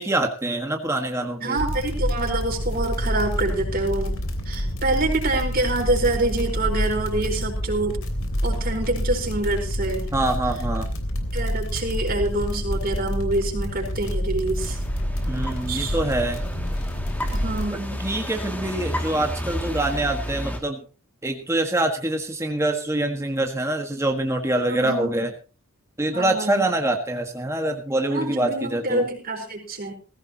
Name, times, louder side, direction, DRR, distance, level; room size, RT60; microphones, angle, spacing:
voice 1, 0.0-1.6 10.1-10.9 15.3-16.4 18.0-20.8 21.2-25.3 26.0-29.0, right 1 dB, 15° right, 3 dB, 1.6 m, -25 dB
voice 2, 1.4-4.2 4.5-8.0 8.4-10.1 11.3-14.8 15.7-16.0 17.3-18.1 24.7-25.2 26.1-26.7 28.1-29.9, right 2 dB, 45° right, 2 dB, 4.6 m, -26 dB
sound 1, 1.6-17.7, equal, 75° left, 3.3 m, -27 dB
sound 2, 14.6-20.6, equal, 10° left, 2.3 m, -32 dB
19.5 x 16.0 x 2.9 m, 0.34 s
head